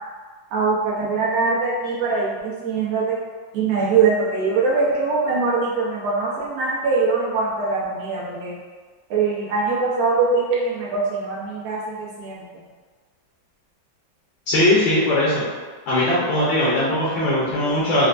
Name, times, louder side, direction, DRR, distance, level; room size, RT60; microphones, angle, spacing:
voice 1, 0.5-3.2 3.5-8.5 9.1-12.4, right 4 dB, 60° right, -6 dB, 1.0 m, -22 dB
voice 2, 14.5-15.4 15.9-18.1, left 1 dB, 80° left, -8 dB, 1.5 m, -19 dB
4.3 x 2.1 x 2.5 m, 1.4 s
omnidirectional pair, 2.1 m